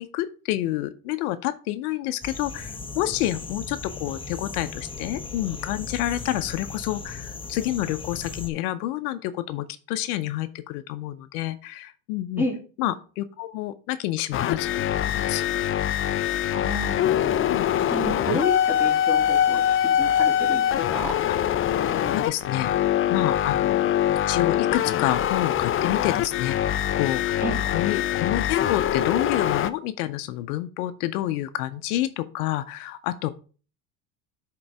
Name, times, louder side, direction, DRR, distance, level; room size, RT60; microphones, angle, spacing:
voice 1, 0.0-12.4 12.8-15.4 17.5-17.6 21.3-21.4 22.0-23.9 24.3-27.4 27.7-33.3, left 14 dB, 80° left, 13 dB, 0.7 m, -29 dB
sound 1, 2.2-8.5, left 4 dB, 10° left, 1.0 m, -37 dB
sound 2, 14.3-29.7, left 10 dB, 30° left, 0.4 m, -23 dB
voice 2, 16.5-17.1 17.9-19.6 19.9-21.2 27.4-27.6, left 1 dB, 5° right, 0 dB, 2.6 m, -30 dB
8.8 x 3.9 x 4.7 m, 0.38 s
supercardioid pair, 95°, 44 cm